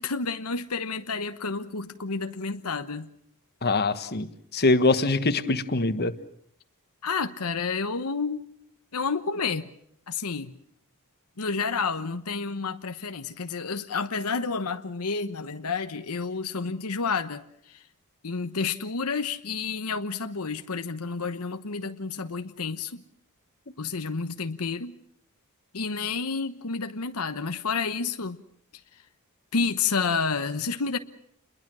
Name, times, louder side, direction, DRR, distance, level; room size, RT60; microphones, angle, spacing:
voice 1, 0.0-3.1 7.0-8.4 8.9-9.7 10.1-10.6 11.4-17.8 18.2-23.0 23.8-24.9 25.7-28.4 29.5-31.0, left 4 dB, 80° left, 1.1 m, -30 dB
voice 2, 3.6-4.3 4.5-6.1, left 3 dB, 45° left, 1.4 m, -23 dB
29.0 x 22.0 x 6.2 m
head